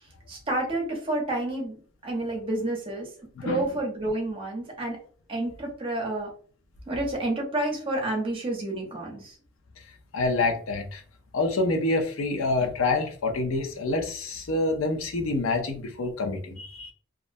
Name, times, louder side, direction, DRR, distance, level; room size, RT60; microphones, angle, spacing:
voice 1, 0.3-1.8 2.0-3.1 3.4-5.0 5.3-6.3 6.9-9.4, right 1 dB, 25° right, -1 dB, 0.7 m, -29 dB
voice 2, 3.4-3.7 10.1-11.0 11.3-16.9, left 2 dB, 80° left, 4 dB, 0.5 m, -27 dB
2.4 x 2.1 x 2.5 m, 0.44 s
head